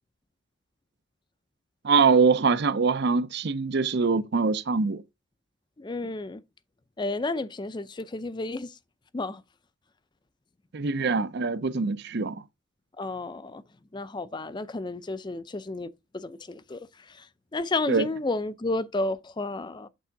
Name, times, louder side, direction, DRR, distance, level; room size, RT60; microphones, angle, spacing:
voice 1, 1.8-5.0 10.7-12.4 17.9-18.1, right 4 dB, 55° right, 0.6 m, -23 dB
voice 2, 5.8-6.4 7.0-8.7 9.1-9.4 13.0-13.6 13.9-15.9 16.1-17.3 17.5-19.9, left 2 dB, 20° left, 0.4 m, -32 dB
8.3 x 3.6 x 5.8 m
head